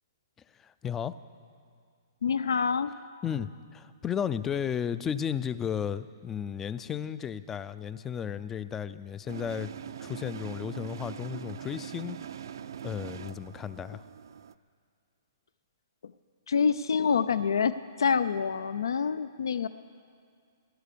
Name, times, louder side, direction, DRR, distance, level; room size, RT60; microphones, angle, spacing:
voice 1, 0.6-1.2 3.2-9.7 10.0-12.2 12.8-14.0, left 8 dB, 10° left, 16 dB, 0.3 m, -34 dB
voice 2, 2.2-2.9 16.0-16.1 16.5-19.7, left 6 dB, 90° left, 14 dB, 0.4 m, -27 dB
sound 1, 9.3-14.5, right 9 dB, 70° right, 0.4 m, -42 dB
17.5 x 11.0 x 6.8 m, 2.2 s
hypercardioid pair, 160°, 2 cm